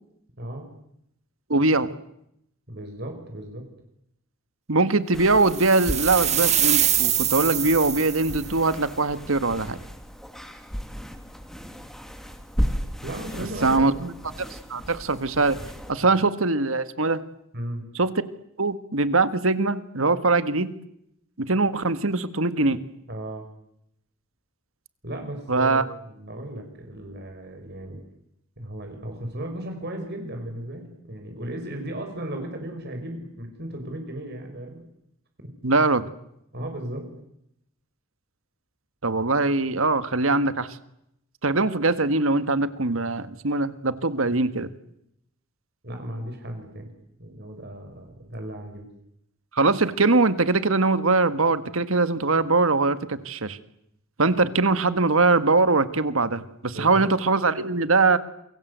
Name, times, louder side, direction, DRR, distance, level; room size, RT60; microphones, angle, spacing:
voice 1, 0.4-0.7 2.7-3.6 13.0-14.0 16.0-16.2 17.5-17.9 23.1-23.5 25.0-28.0 28.6-34.8 36.5-37.1 45.8-46.9 47.2-48.9 56.7-57.1, right 1 dB, 50° right, 4 dB, 5.4 m, -35 dB
voice 2, 1.5-1.9 4.7-9.8 13.6-14.1 14.4-15.6 15.9-17.2 17.9-18.1 18.6-20.7 21.4-22.8 25.5-25.8 35.6-36.1 39.0-40.7 41.4-44.7 49.5-53.6 54.2-58.2, right 3 dB, 75° right, 12 dB, 1.7 m, -22 dB
sound 1, 5.1-15.9, equal, ahead, 2.7 m, -35 dB
sound 2, 5.5-8.5, right 10 dB, 35° right, 2.1 m, -24 dB
28.5 x 23.5 x 8.2 m, 0.79 s
head